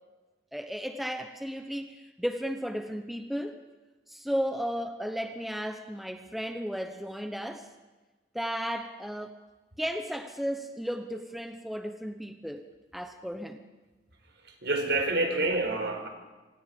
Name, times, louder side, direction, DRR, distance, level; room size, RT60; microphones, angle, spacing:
voice 1, 0.5-3.6 4.1-7.7 8.3-9.4 9.8-13.6 15.3-15.4, equal, ahead, 6 dB, 1.0 m, -34 dB
voice 2, 14.6-16.1, right 2 dB, 70° right, 4 dB, 4.6 m, -27 dB
27.0 x 26.0 x 5.3 m, 1.2 s
head